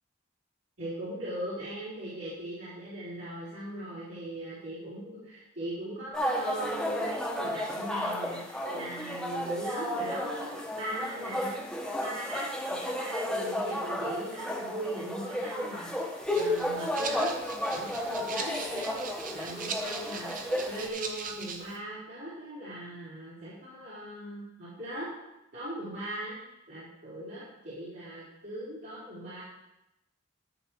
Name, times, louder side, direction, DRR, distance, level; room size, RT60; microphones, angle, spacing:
voice 1, 0.8-10.5 10.8-11.6 12.0-17.3 17.7-25.1 25.5-26.4 26.7-29.4, right 1 dB, 70° right, -13 dB, 4.1 m, -39 dB
sound 1, 6.1-20.9, left 1 dB, 5° left, 1.3 m, -33 dB
Rattle (instrument), 16.2-21.8, right 5 dB, 45° right, 1.0 m, -40 dB
12.5 x 6.0 x 4.6 m, 0.90 s
head